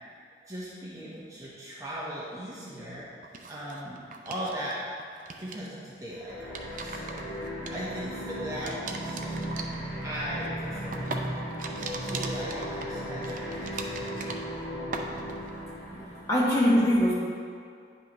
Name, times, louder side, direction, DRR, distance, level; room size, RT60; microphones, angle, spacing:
voice 1, 0.5-3.1 3.5-4.8 5.4-7.2 7.7-9.6 10.0-11.2 11.9-13.7, equal, 20° right, -7 dB, 1.0 m, -38 dB
sound 1, 3.2-4.7 5.0-5.7 6.3-8.2 8.6-14.6 14.9-15.5, right 4 dB, 45° right, 0.5 m, -40 dB
sound 2, 6.2-16.7, equal, 90° left, 1.6 m, -36 dB
voice 2, 16.3-17.2, equal, 15° left, -7 dB, 1.4 m, -22 dB
9.7 x 5.6 x 3.0 m, 2.3 s
head